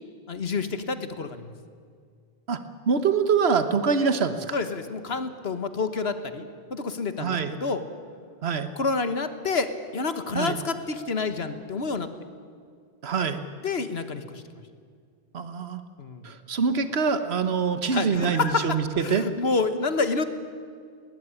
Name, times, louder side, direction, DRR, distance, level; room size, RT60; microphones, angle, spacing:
voice 1, 0.3-1.5 4.5-7.8 8.8-12.1 13.6-14.4 16.0-16.3 17.9-18.7 19.0-20.2, left 4 dB, 80° left, 10 dB, 1.7 m, -28 dB
voice 2, 2.9-4.6 7.2-7.5 8.4-8.7 10.3-10.6 13.0-13.4 15.3-15.8 16.2-19.3, right 5 dB, 90° right, 10 dB, 1.4 m, -25 dB
20.0 x 19.0 x 9.9 m, 2.1 s
omnidirectional pair, 1.0 m